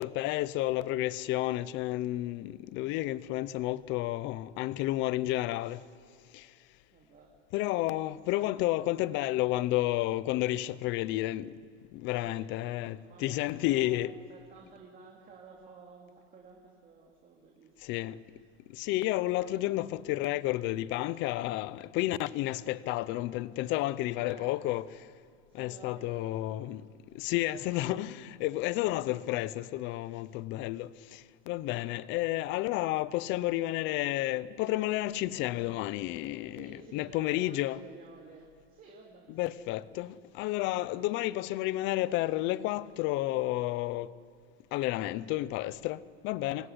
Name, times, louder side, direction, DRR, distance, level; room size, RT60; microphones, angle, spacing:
voice 1, 0.0-5.8 6.3-6.6 7.5-11.6 11.9-14.1 17.8-18.2 18.7-25.1 25.5-37.8 39.3-44.1 44.7-46.7, left 16 dB, 30° left, 0.6 m, -31 dB
voice 2, 6.9-7.4 8.3-8.5 9.0-9.1 12.1-14.0 14.3-17.9 24.1-24.5 25.5-26.4 36.5-40.1 46.6-46.7, right 5 dB, 25° right, 2.7 m, -53 dB
26.0 x 22.0 x 10.0 m
supercardioid pair, 165°, 36 cm